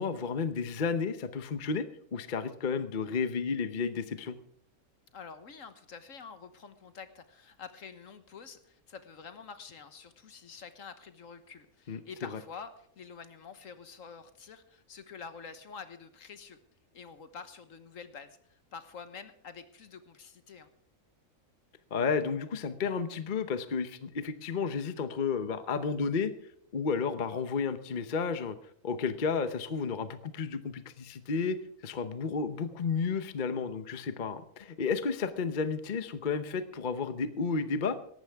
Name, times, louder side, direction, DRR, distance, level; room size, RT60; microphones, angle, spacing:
voice 1, 0.0-4.4 11.9-12.4 21.9-26.3 26.7-28.6 28.8-31.6 31.8-38.0, left 5 dB, 40° left, 11 dB, 0.9 m, -32 dB
voice 2, 5.1-16.6 16.9-20.7, left 6 dB, 60° left, 11 dB, 1.5 m, -47 dB
18.5 x 14.5 x 3.5 m, 0.67 s
omnidirectional pair, 1.6 m